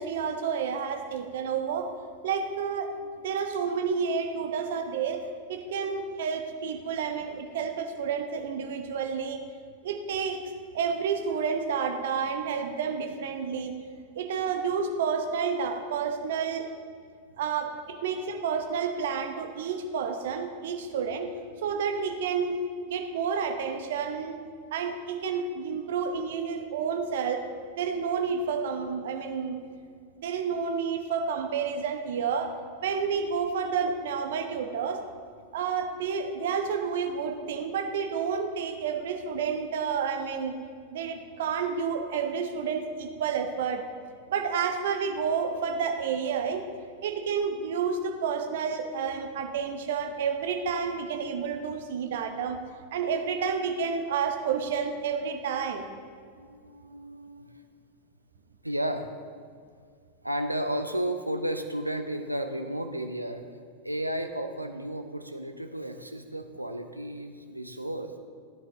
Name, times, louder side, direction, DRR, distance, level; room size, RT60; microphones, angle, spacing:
voice 1, 0.0-1.9 2.2-2.9 3.2-5.2 5.5-9.4 9.8-10.4 10.7-13.7 14.1-16.7 17.4-21.3 21.6-22.6 22.9-24.4 24.7-27.4 27.8-29.6 30.2-32.5 32.8-35.0 35.5-40.6 40.9-43.8 44.3-46.7 47.0-52.6 52.9-55.9, right 6 dB, 55° right, 5 dB, 1.0 m, -30 dB
voice 2, 56.2-57.7 58.6-59.1 60.2-63.4 63.8-68.2, right 1 dB, 85° right, 6 dB, 0.8 m, -33 dB
16.0 x 9.9 x 3.8 m, 2.1 s
figure-of-eight pair, 90°, 0 cm